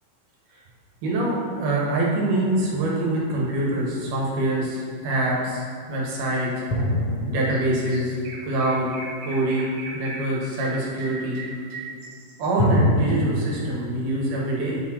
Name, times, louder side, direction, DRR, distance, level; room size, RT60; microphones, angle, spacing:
voice 1, 1.0-5.6 5.9-6.6 7.3-8.2 8.4-8.9 9.2-11.4 12.4-14.8, right 1 dB, 75° right, -3 dB, 2.8 m, -25 dB
sound 1, 2.5-3.9 6.7-9.3 12.6-13.5, left 1 dB, 60° left, 1.7 m, -26 dB
Chirp tweet, 7.5-7.6 7.9-12.5, right 3 dB, 90° right, 2.8 m, -38 dB
8.1 x 4.4 x 4.4 m, 2.2 s
omnidirectional pair, 3.8 m